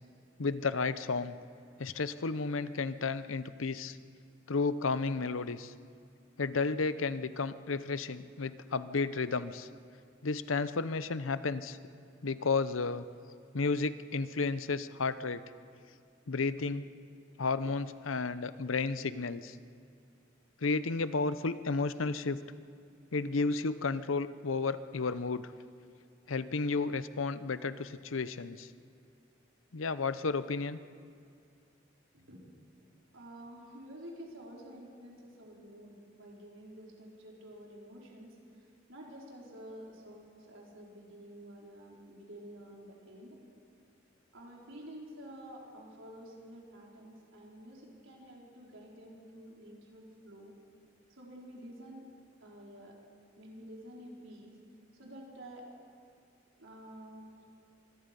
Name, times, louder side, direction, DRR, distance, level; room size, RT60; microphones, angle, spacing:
voice 1, 0.4-1.4 1.8-4.0 4.5-5.7 6.4-9.7 10.2-11.8 12.2-13.0 13.5-15.4 16.3-16.8 17.4-19.6 20.6-22.4 23.1-25.5 26.3-28.7 29.7-30.8, left 4 dB, 90° left, 14 dB, 0.8 m, -32 dB
voice 2, 33.1-43.4 44.3-50.5 51.1-52.1 52.4-52.9 53.4-54.6 55.0-55.7 56.6-57.3, equal, 85° right, -2 dB, 4.8 m, -50 dB
25.0 x 21.0 x 5.4 m, 2.3 s
head